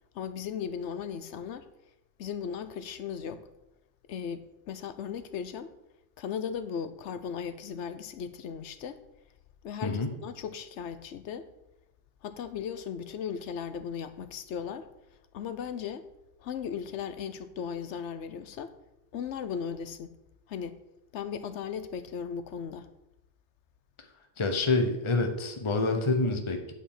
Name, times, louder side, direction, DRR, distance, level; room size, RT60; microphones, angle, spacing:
voice 1, 0.1-1.7 2.2-3.4 4.1-5.7 6.2-9.0 9.6-11.5 12.2-14.9 15.3-16.1 16.4-18.7 19.1-20.2 20.5-20.8 21.1-22.9, left 7 dB, 90° left, 1.0 m, -37 dB
voice 2, 9.8-10.1 24.4-26.7, left 3 dB, 30° left, 0.9 m, -27 dB
8.8 x 5.0 x 6.6 m
omnidirectional pair, 1.2 m